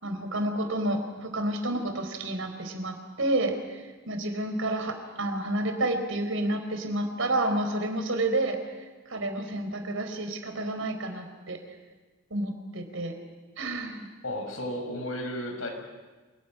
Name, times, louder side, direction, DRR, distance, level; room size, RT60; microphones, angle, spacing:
voice 1, 0.0-8.6 9.1-11.6 12.3-13.2 13.6-14.1, right 1 dB, 75° right, 6 dB, 4.3 m, -30 dB
voice 2, 14.2-15.7, left 1 dB, 80° left, 3 dB, 6.7 m, -33 dB
27.0 x 19.5 x 9.7 m, 1.3 s
head